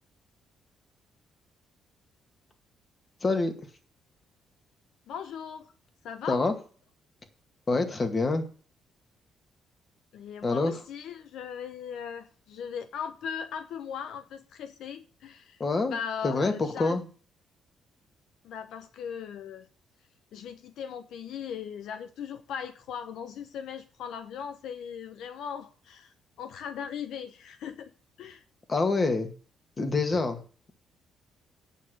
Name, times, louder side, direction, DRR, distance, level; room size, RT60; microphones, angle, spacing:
voice 1, 3.2-3.5 6.3-6.5 7.7-8.4 10.4-10.7 15.6-16.0 16.2-17.0 28.7-29.3 29.8-30.4, left 3 dB, 35° left, 6 dB, 1.9 m, -26 dB
voice 2, 5.1-5.7 6.0-6.4 10.1-17.0 18.4-19.7 20.3-27.9 28.2-28.4, left 7 dB, 80° left, 10 dB, 0.7 m, -38 dB
8.9 x 6.4 x 6.7 m, 0.40 s
cardioid pair, 90°, 0 cm